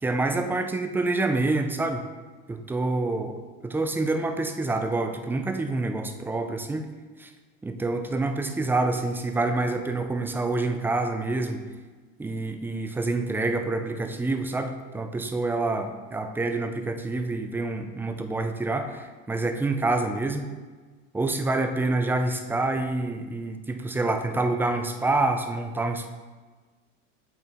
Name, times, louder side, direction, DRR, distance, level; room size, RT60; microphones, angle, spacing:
voice 1, 0.0-2.1 2.5-3.3 3.6-6.8 7.2-7.3 7.6-11.6 12.2-20.5 21.1-26.1, right 2 dB, 5° right, 6 dB, 0.4 m, -27 dB
8.1 x 4.3 x 3.7 m, 1.4 s
supercardioid pair, 115°, 35 cm